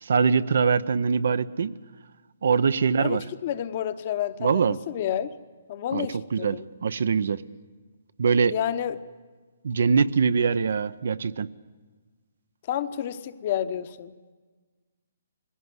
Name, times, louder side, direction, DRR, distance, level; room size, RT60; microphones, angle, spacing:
voice 1, 0.0-1.7 2.4-3.2 4.4-4.8 5.9-6.1 6.3-7.4 8.2-8.5 9.6-11.5, right 5 dB, 70° right, 15 dB, 0.7 m, -23 dB
voice 2, 3.0-5.3 5.7-6.7 8.5-9.0 12.7-14.1, left 10 dB, 40° left, 11 dB, 0.9 m, -30 dB
20.5 x 16.5 x 9.6 m, 1.4 s
hypercardioid pair, 160°, 0 cm